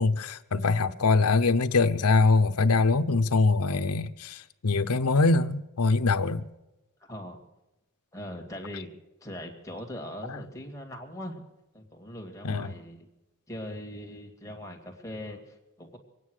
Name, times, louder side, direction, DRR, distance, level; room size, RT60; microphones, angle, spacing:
voice 1, 0.0-6.5 12.4-12.7, left 3 dB, 90° left, 0.8 m, -23 dB
voice 2, 8.1-8.9 9.2-11.4 11.7-13.1 13.5-16.0, left 1 dB, 15° left, 2.3 m, -40 dB
24.0 x 9.3 x 6.4 m
head